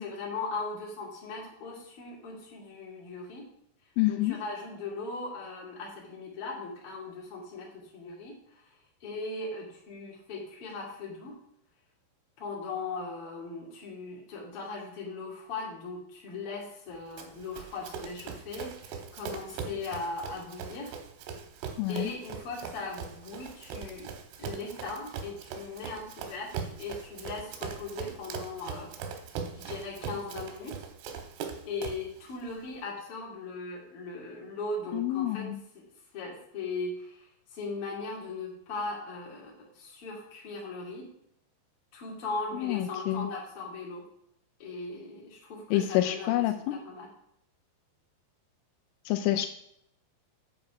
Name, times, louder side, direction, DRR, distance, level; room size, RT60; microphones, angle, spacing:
voice 1, 0.0-3.4 4.1-8.6 9.0-11.3 12.4-20.9 21.9-24.1 24.4-28.9 29.5-30.9 31.6-35.5 36.1-41.1 41.9-44.0 44.6-47.1, left 3 dB, 40° left, -3 dB, 2.5 m, -39 dB
voice 2, 4.0-4.4 21.8-22.1 34.9-35.6 42.5-43.3 45.7-46.7 49.1-49.5, left 14 dB, 85° left, 7 dB, 3.0 m, -27 dB
Run, 17.2-32.1, right 6 dB, 80° right, 3.6 m, -40 dB
8.5 x 7.4 x 4.9 m, 0.73 s
omnidirectional pair, 5.8 m